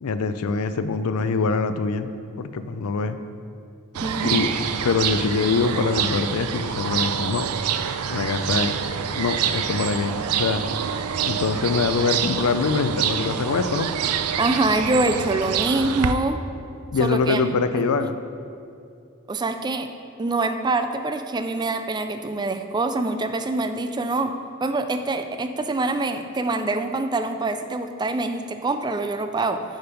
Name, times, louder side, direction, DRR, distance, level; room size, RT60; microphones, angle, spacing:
voice 1, 0.0-2.1 2.4-3.2 4.2-4.5 4.8-7.5 8.1-8.8 9.1-10.6 11.2-13.9 16.9-18.2, left 4 dB, 85° left, 11 dB, 0.5 m, -24 dB
sound 1, 3.9-16.1, right 8 dB, 90° right, 0.4 m, -26 dB
voice 2, 4.0-4.5 14.4-16.4 17.0-17.5 18.0-18.1 19.3-19.9 20.2-29.6, right 2 dB, 20° right, 8 dB, 0.3 m, -25 dB
9.0 x 5.2 x 5.2 m, 2.5 s
head